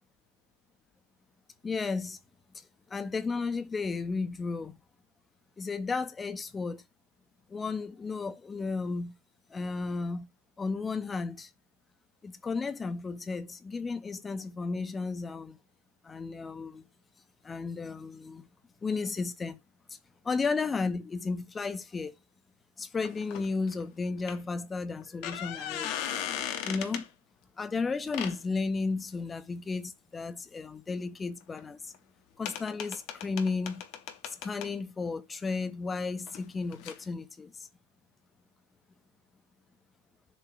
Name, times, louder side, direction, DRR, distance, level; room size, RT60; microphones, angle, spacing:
voice 1, 1.6-2.2 2.5-2.6 2.9-4.8 5.6-6.8 7.5-9.1 9.5-10.3 10.6-11.5 12.2-15.6 16.0-16.8 17.4-18.4 18.8-19.6 19.9-20.0 20.2-22.2 22.8-25.9 26.6-27.0 27.6-31.9 32.4-33.8 34.3-37.7, left 4 dB, 15° left, 0.8 m, -33 dB
sound 1, 23.0-23.8 24.3-24.4 25.0-27.1 28.1-28.4 31.6-31.7 31.9-32.0 32.5-34.7 36.3-36.4 36.7-37.0, left 10 dB, 40° left, 0.9 m, -37 dB
7.1 x 2.8 x 4.9 m
figure-of-eight pair, 90°, 0 cm